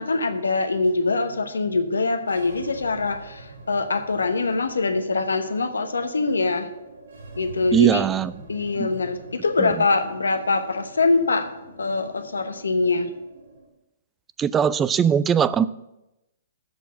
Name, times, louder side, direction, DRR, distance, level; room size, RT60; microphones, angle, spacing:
voice 1, 0.0-6.7 7.4-8.0 8.5-11.5 11.8-13.1, left 3 dB, 85° left, 8 dB, 1.0 m, -23 dB
sound 1, 2.2-13.7, right 2 dB, 70° right, 4.1 m, -45 dB
voice 2, 7.7-8.3 8.8-8.9 9.6-9.7 14.4-15.7, right 8 dB, 15° right, 17 dB, 0.3 m, -20 dB
7.8 x 6.4 x 6.9 m, 0.93 s
hypercardioid pair, 130°, 0 cm